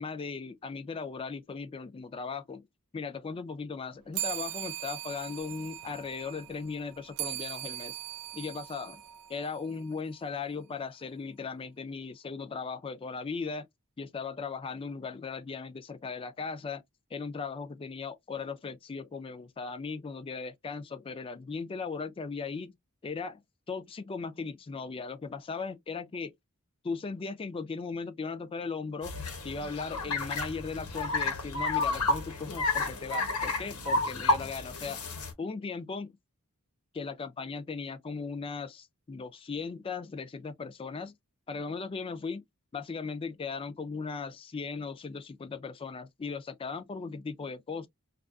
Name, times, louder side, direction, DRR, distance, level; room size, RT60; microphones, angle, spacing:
voice 1, 0.0-2.7 2.9-8.0 8.3-9.0 9.3-13.7 14.0-16.8 17.1-22.8 23.0-23.4 23.7-26.3 26.9-29.2 29.4-35.0 35.4-36.2 36.9-41.2 41.5-42.4 42.7-47.9, left 4 dB, 25° left, 0.3 m, -37 dB
sound 1, 4.1-10.0, right 14 dB, 80° right, 0.3 m, -40 dB
sound 2, 29.0-35.3, left 2 dB, 75° left, 1.0 m, -31 dB
2.4 x 2.3 x 2.3 m
head